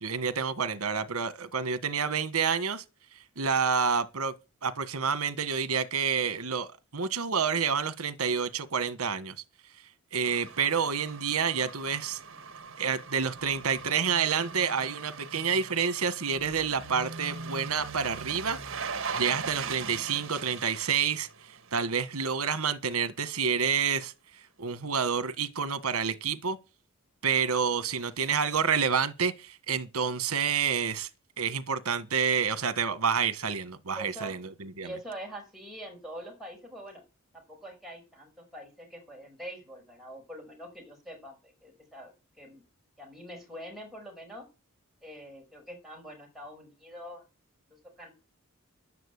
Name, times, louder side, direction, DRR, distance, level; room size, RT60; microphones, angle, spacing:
voice 1, 0.0-2.8 3.4-4.3 4.6-9.3 10.1-12.2 12.8-18.6 19.1-21.3 21.7-24.1 24.6-26.6 27.2-31.1 31.4-34.9, right 6 dB, 80° right, 1.4 m, -28 dB
sound 1, 10.2-22.1 22.4-22.5, right 5 dB, 60° right, 1.8 m, -40 dB
voice 2, 33.9-34.4 34.8-37.0 37.3-42.6 43.0-44.4 45.0-47.2 47.7-48.1, right 1 dB, ahead, 5.6 m, -44 dB
11.0 x 9.2 x 8.3 m
head